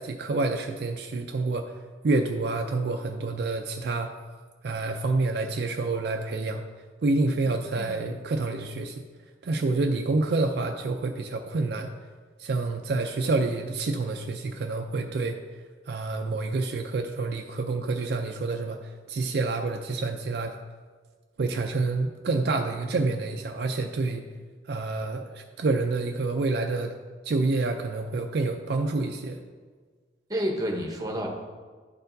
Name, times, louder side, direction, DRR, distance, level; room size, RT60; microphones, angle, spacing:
voice 1, 0.0-1.7 2.0-4.1 4.6-6.6 7.0-9.0 9.4-11.9 12.4-15.4 15.9-20.5 21.4-24.2 24.7-26.9 27.2-29.4, right 3 dB, 55° right, 4 dB, 0.4 m, -28 dB
voice 2, 7.3-8.0 30.3-31.3, equal, 20° right, 1 dB, 0.8 m, -31 dB
11.5 x 4.4 x 2.6 m, 1.5 s
head